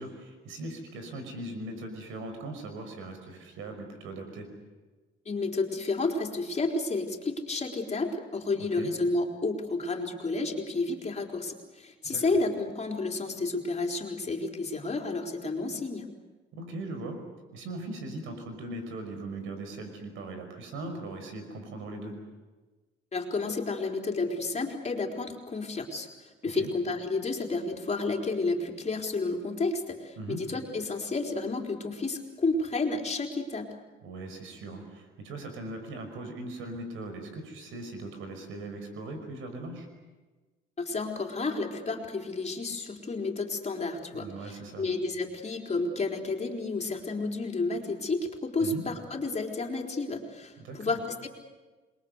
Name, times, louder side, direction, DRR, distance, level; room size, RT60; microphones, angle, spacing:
voice 1, 0.0-4.5 8.8-8.9 12.0-12.2 16.5-17.2 17.5-22.1 26.5-26.7 30.2-30.4 34.0-39.9 44.1-44.9 48.6-48.8 50.6-51.0, right 2 dB, 90° right, 6 dB, 5.6 m, -39 dB
voice 2, 5.3-16.1 23.1-33.7 40.8-44.5 44.8-51.3, left 3 dB, 35° left, 2 dB, 4.1 m, -31 dB
27.5 x 22.0 x 8.2 m, 1.2 s
cardioid pair, 90°, 20 cm